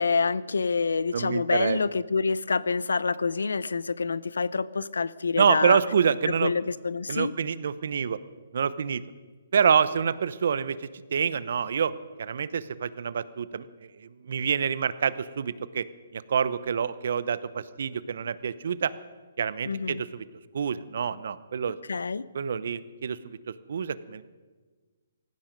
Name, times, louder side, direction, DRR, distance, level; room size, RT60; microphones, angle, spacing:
voice 1, 0.0-5.8 6.4-7.3 19.7-20.0 21.9-22.2, left 4 dB, 85° left, 19 dB, 0.6 m, -27 dB
voice 2, 1.1-1.8 5.4-6.5 7.1-8.2 8.5-9.0 9.5-11.9 12.2-15.9 16.1-18.9 19.4-20.2 20.5-21.8 22.3-23.2 23.5-24.2, right 7 dB, 65° right, 16 dB, 0.8 m, -27 dB
18.0 x 15.0 x 5.2 m, 1.4 s
hypercardioid pair, 145°, 0 cm